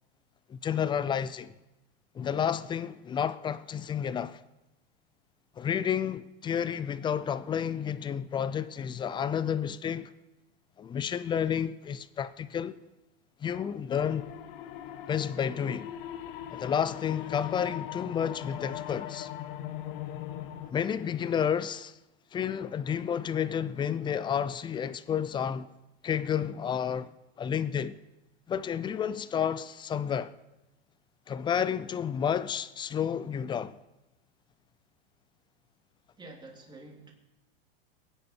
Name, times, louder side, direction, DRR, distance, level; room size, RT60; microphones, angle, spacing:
voice 1, 0.5-1.5 2.1-4.4 5.6-10.1 10.8-12.8 13.4-14.3 15.1-15.9 16.5-19.3 20.7-22.0 22.3-25.7 26.0-27.1 27.4-28.0 28.5-30.4 31.3-33.8, left 8 dB, 15° left, 0.5 m, -31 dB
sound 1, 13.9-20.7, left 11 dB, 60° left, 1.2 m, -40 dB
voice 2, 36.2-37.1, right 2 dB, 15° right, 3.0 m, -48 dB
22.5 x 9.8 x 4.6 m
supercardioid pair, 130°, 30 cm